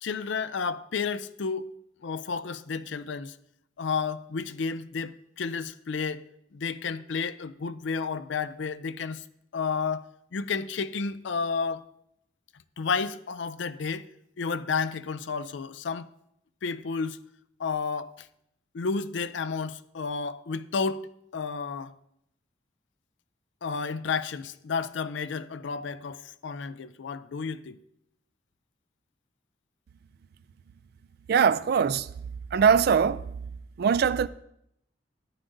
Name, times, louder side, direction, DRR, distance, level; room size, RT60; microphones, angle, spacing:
voice 1, 0.0-1.7 2.0-3.4 3.8-6.2 6.5-9.2 9.5-11.8 12.8-14.1 14.4-16.1 16.6-17.2 17.6-18.3 18.7-21.9 23.6-27.8, left 5 dB, 75° left, 0.5 m, -31 dB
voice 2, 31.3-32.2 32.5-33.5 33.8-34.3, right 6 dB, 55° right, 0.3 m, -22 dB
13.5 x 10.0 x 2.6 m
head